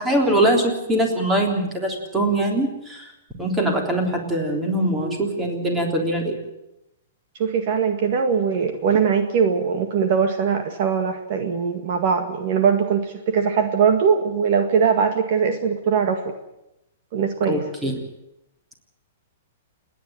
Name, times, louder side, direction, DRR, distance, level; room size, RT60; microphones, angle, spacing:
voice 1, 0.0-3.1 3.4-6.4 17.5-18.0, right 1 dB, 10° right, 2 dB, 3.5 m, -22 dB
voice 2, 7.4-16.3 17.1-17.6, right 6 dB, 45° right, 6 dB, 1.9 m, -21 dB
29.5 x 10.5 x 9.2 m, 0.87 s
hypercardioid pair, 160°, 0 cm